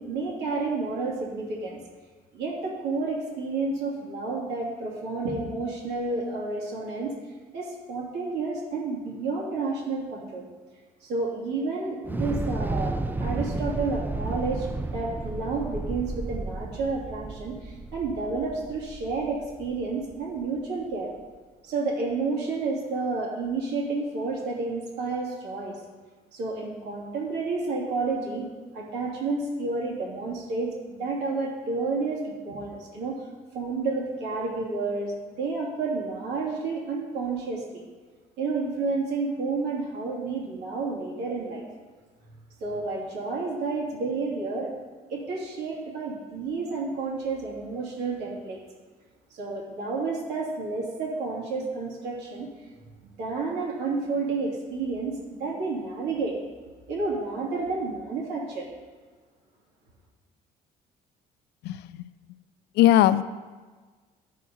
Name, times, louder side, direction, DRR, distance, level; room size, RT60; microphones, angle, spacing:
voice 1, 0.0-1.8 2.3-7.2 7.5-10.4 11.0-14.7 14.9-21.1 21.6-25.8 26.3-28.5 28.7-33.2 33.5-37.8 38.4-41.7 42.6-44.7 45.1-48.6 49.3-52.5 53.0-56.4 56.9-58.7, right 3 dB, 85° right, -3 dB, 2.7 m, -30 dB
Thunder / Explosion, 12.0-20.3, right 2 dB, 10° right, 0.4 m, -32 dB
voice 2, 61.6-62.1 62.8-63.2, left 13 dB, 80° left, 15 dB, 0.4 m, -19 dB
11.0 x 4.7 x 5.3 m, 1.4 s
cardioid pair, 110°, 17 cm